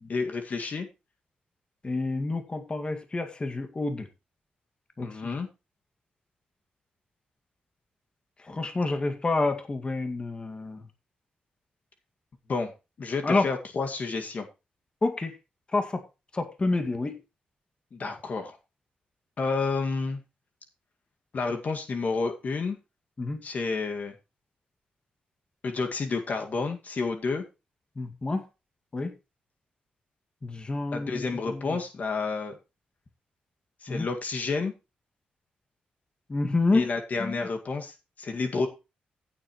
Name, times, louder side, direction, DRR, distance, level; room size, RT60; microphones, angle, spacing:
voice 1, 0.1-0.9 5.0-5.5 12.5-12.7 13.0-14.5 17.9-18.6 19.4-20.2 21.3-22.8 23.4-24.1 25.6-27.4 30.9-32.6 33.8-34.7 36.7-38.7, left 4 dB, 55° left, 2.0 m, -30 dB
voice 2, 1.8-4.1 5.0-5.4 8.4-10.8 13.2-13.5 15.0-15.3 15.7-16.0 16.3-17.2 23.2-23.4 28.0-28.4 28.9-29.1 30.4-31.8 33.9-34.1 36.3-36.9 37.2-37.4, left 3 dB, 30° left, 2.0 m, -28 dB
15.5 x 7.6 x 3.1 m
cardioid pair, 75°, 3 cm